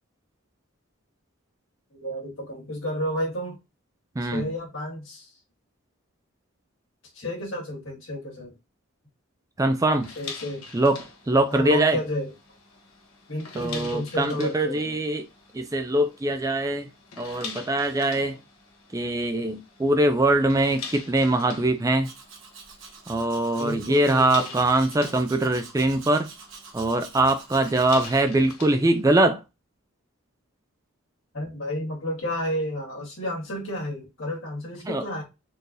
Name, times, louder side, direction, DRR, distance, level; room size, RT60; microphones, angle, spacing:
voice 1, 1.9-3.6 4.2-5.3 7.1-8.5 10.2-10.6 11.5-12.3 13.3-15.0 23.6-24.5 25.1-25.2 31.3-35.2, left 1 dB, 65° left, 2.1 m, -31 dB
voice 2, 4.2-4.5 9.6-10.1 10.7-12.0 13.6-15.3 15.5-16.9 17.2-18.4 18.9-22.1 23.1-26.3 26.7-29.4 34.8-35.0, right 2 dB, 15° right, 0.3 m, -22 dB
sound 1, 10.0-29.0, left 5 dB, 85° left, 1.2 m, -44 dB
Domestic sounds home sounds, 22.0-28.2, right 5 dB, 65° right, 1.4 m, -46 dB
4.3 x 3.2 x 2.6 m
head